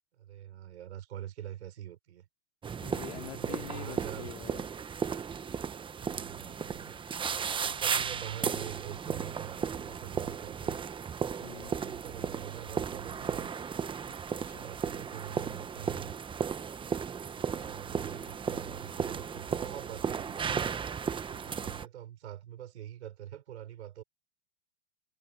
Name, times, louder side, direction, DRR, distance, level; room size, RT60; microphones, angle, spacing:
voice 1, 0.1-2.3 3.2-4.3 6.0-7.1 7.5-10.8 11.5-13.5 13.8-16.2 17.1-20.7 21.3-24.0, right 11 dB, 85° right, 4.7 m, -45 dB
sound 1, 2.6-21.9, right 6 dB, 15° right, 1.1 m, -35 dB
voice 2, 2.8-4.7 7.5-7.8 11.4-11.9 14.0-14.7, left 13 dB, 75° left, 2.7 m, -46 dB
hypercardioid pair, 130°, 32 cm